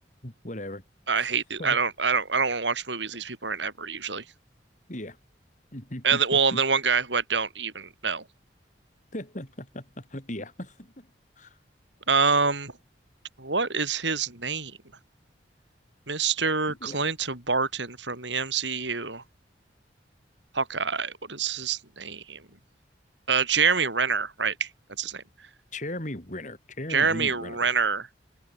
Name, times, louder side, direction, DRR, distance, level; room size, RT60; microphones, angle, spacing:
voice 1, 0.2-0.8 1.2-1.3 1.6-1.8 4.9-5.2 5.7-6.6 9.1-11.1 11.4-11.6 16.7-17.0 25.7-27.7, left 1 dB, 45° left, 5.4 m, -37 dB
voice 2, 1.1-4.2 6.0-8.2 12.1-12.7 13.4-14.7 16.1-19.2 20.5-22.4 23.3-24.7 25.0-25.2 26.9-28.1, right 5 dB, 85° right, 7.6 m, -26 dB
head